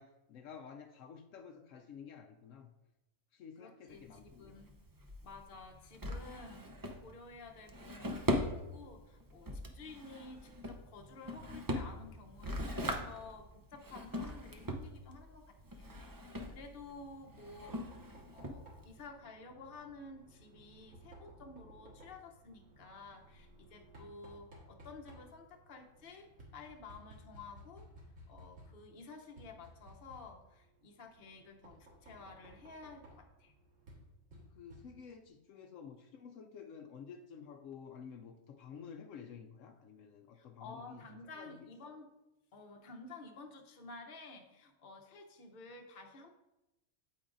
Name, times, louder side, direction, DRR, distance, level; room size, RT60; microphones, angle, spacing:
voice 1, 0.0-2.7 3.3-4.7 34.3-41.0 41.4-41.7, left 6 dB, 75° left, 5 dB, 1.0 m, -51 dB
voice 2, 3.6-4.7 5.2-17.9 18.3-27.9 28.3-33.5 40.3-42.1 42.5-46.3, left 3 dB, 50° left, 3 dB, 1.0 m, -52 dB
Drawer open or close, 3.9-19.1, equal, 25° right, 0.4 m, -41 dB
Knock, 16.8-35.3, equal, 70° right, 2.1 m, -58 dB
8.6 x 8.6 x 2.6 m, 0.97 s
omnidirectional pair, 1.3 m